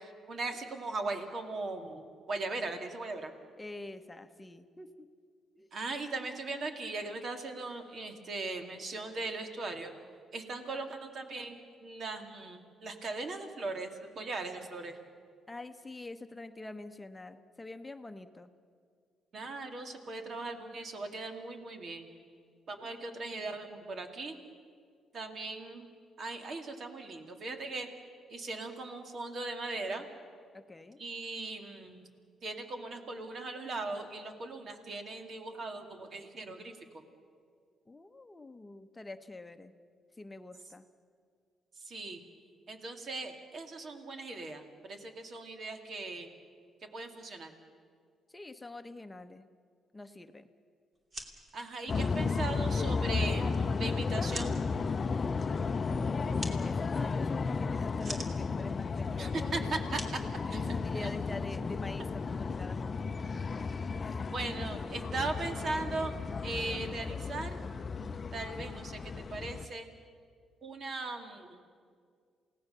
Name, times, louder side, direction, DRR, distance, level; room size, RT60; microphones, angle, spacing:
voice 1, 0.0-3.3 5.7-9.9 10.3-15.0 19.3-22.1 22.7-24.4 25.1-25.9 26.2-27.9 28.3-30.1 31.0-32.1 32.4-37.0 41.8-42.2 42.7-46.3 46.9-47.5 51.5-54.6 59.2-60.0 60.5-61.1 64.3-66.2 66.4-67.6 68.3-69.9 70.6-71.6, right 3 dB, 50° right, 5 dB, 2.6 m, -39 dB
voice 2, 3.6-5.1 5.6-5.7 15.5-18.5 23.2-23.3 30.5-31.0 37.9-39.7 40.2-40.9 48.3-49.5 49.9-50.5 55.9-59.8 60.2-63.1 64.0-64.3, left 2 dB, 15° left, 8 dB, 1.0 m, -46 dB
sound 1, 50.9-61.2, right 1 dB, 35° right, 2.9 m, -48 dB
sound 2, 51.9-69.7, left 4 dB, 40° left, 0.7 m, -33 dB
28.0 x 18.0 x 6.9 m, 2.1 s
cardioid pair, 90°, 0 cm